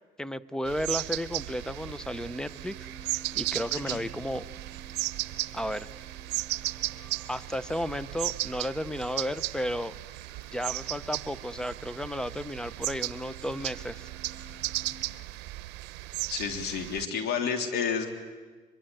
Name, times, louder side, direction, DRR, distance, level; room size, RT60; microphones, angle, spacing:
voice 1, 0.2-2.9 3.3-4.5 5.5-5.9 7.3-9.9 10.5-14.1, equal, 5° left, 16 dB, 0.7 m, -33 dB
sound 1, 0.6-14.9, right 3 dB, 40° left, 6.6 m, -52 dB
sound 2, 0.7-17.1, right 18 dB, 90° right, 0.7 m, -36 dB
voice 2, 16.3-18.1, left 6 dB, 75° left, 4 dB, 3.4 m, -30 dB
24.0 x 23.0 x 9.3 m, 1.4 s
cardioid pair, 110°, 17 cm